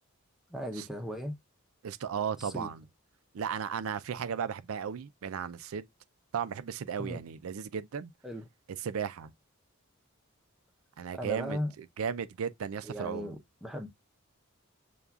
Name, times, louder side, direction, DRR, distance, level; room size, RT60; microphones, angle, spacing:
voice 1, 0.5-1.4 2.4-2.7 7.0-7.2 8.2-8.5 11.1-11.7 12.8-13.9, equal, ahead, 0.6 m, -37 dB
voice 2, 1.8-2.8 3.3-5.9 6.3-8.1 8.8-9.3 11.0-13.3, right 7 dB, 75° right, 0.4 m, -35 dB
6.7 x 2.3 x 2.3 m
head